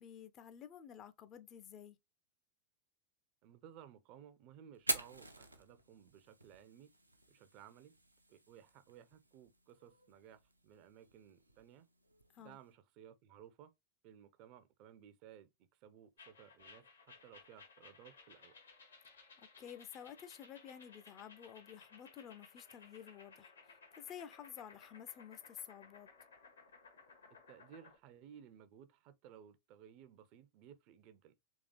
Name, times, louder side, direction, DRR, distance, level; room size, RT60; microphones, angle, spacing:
voice 1, 0.0-2.0 12.3-12.6 19.4-26.1, left 9 dB, 35° left, 0.5 m, -52 dB
voice 2, 3.4-6.9 7.3-7.9 8.3-11.9 12.4-13.7 14.0-15.5 15.8-18.6 27.3-31.3, right 9 dB, 40° right, 0.5 m, -58 dB
Fire, 4.7-12.7, right 2 dB, 85° right, 0.7 m, -46 dB
sound 1, 16.2-28.0, left 4 dB, 70° left, 1.4 m, -60 dB
3.6 x 3.4 x 3.1 m
figure-of-eight pair, 90°, 0 cm